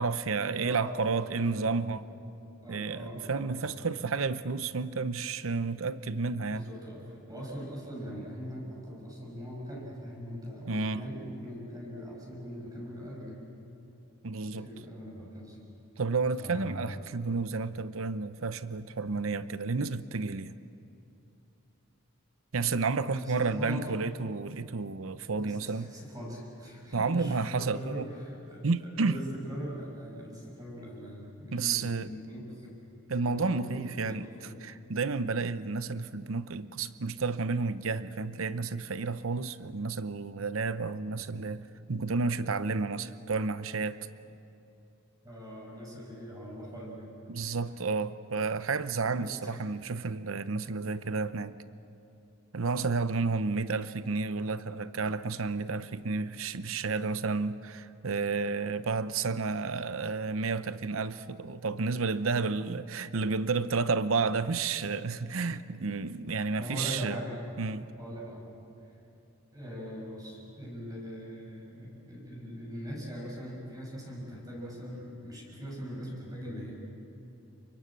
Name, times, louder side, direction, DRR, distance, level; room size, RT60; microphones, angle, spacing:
voice 1, 0.0-2.1 2.7-6.7 10.7-11.1 14.2-14.7 16.0-20.5 22.5-25.9 26.9-28.1 28.6-29.2 31.5-32.1 33.1-44.0 47.3-51.5 52.5-67.2 67.6-67.9, right 4 dB, 75° right, 0.8 m, -31 dB
voice 2, 0.5-1.0 1.3-1.7 2.6-3.8 6.5-13.4 14.4-15.6 16.4-17.0 23.1-23.9 25.4-32.7 33.2-34.6 45.2-47.1 47.4-47.5 49.2-49.5 66.6-67.4 68.0-68.6 69.5-76.7, equal, 20° right, 6.8 m, -41 dB
29.0 x 24.5 x 7.5 m
head